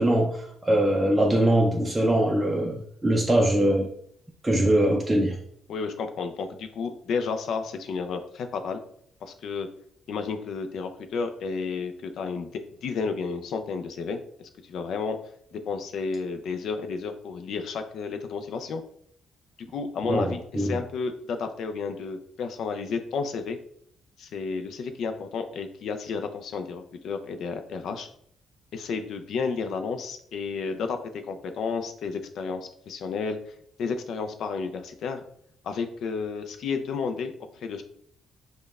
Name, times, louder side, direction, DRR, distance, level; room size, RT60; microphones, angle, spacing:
voice 1, 0.0-3.9 4.4-5.4 20.1-20.3 20.6-20.8, right 1 dB, 15° right, -1 dB, 0.4 m, -22 dB
voice 2, 5.7-8.8 9.2-9.7 10.1-12.5 12.8-14.2 14.6-15.2 15.5-18.8 19.7-23.6 24.2-28.1 28.7-31.0 31.3-33.4 33.8-35.2 35.6-37.8, left 5 dB, 70° left, 7 dB, 0.4 m, -31 dB
5.1 x 2.2 x 2.3 m, 0.66 s
cardioid pair, 90°, 0 cm